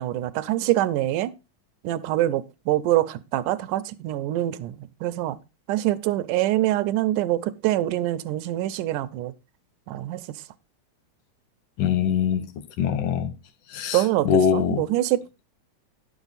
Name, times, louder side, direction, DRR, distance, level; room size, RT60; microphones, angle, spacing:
voice 1, 0.0-1.3 1.8-5.4 5.7-9.3 9.9-10.4 13.9-15.4, right 14 dB, 90° right, 2.2 m, -25 dB
voice 2, 11.8-12.5 12.8-13.3 13.7-14.8, left 8 dB, 75° left, 2.7 m, -23 dB
11.0 x 7.1 x 4.0 m
omnidirectional pair, 3.6 m